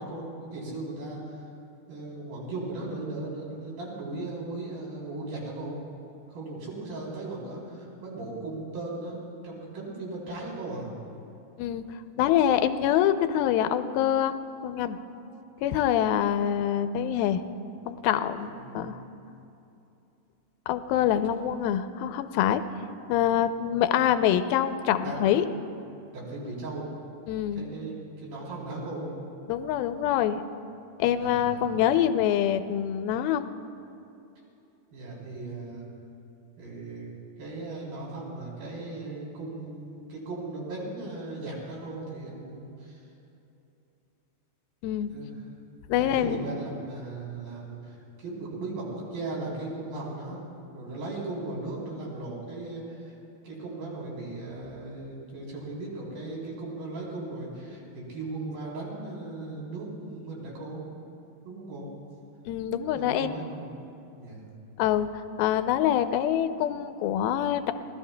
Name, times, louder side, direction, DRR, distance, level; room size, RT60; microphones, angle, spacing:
voice 1, 0.0-1.4 1.9-5.8 6.3-10.9 16.3-16.6 18.4-18.9 25.0-25.2 25.6-25.7 26.1-26.9 27.5-29.1 31.2-31.8 34.9-35.9 36.6-43.0 45.1-45.3 46.0-50.4 50.7-53.2 53.4-60.8 61.4-61.9 62.9-63.8 64.1-64.5, right 2 dB, 60° right, -4 dB, 5.0 m, -37 dB
voice 2, 12.2-14.4 14.6-15.0 15.6-17.4 17.9-19.0 20.7-22.6 23.1-25.4 27.3-27.6 29.5-30.4 31.0-33.5 44.8-45.1 45.9-46.4 62.5-63.4 64.8-67.7, left 10 dB, 80° left, 10 dB, 2.2 m, -25 dB
26.0 x 18.5 x 2.2 m, 2.8 s
omnidirectional pair, 4.6 m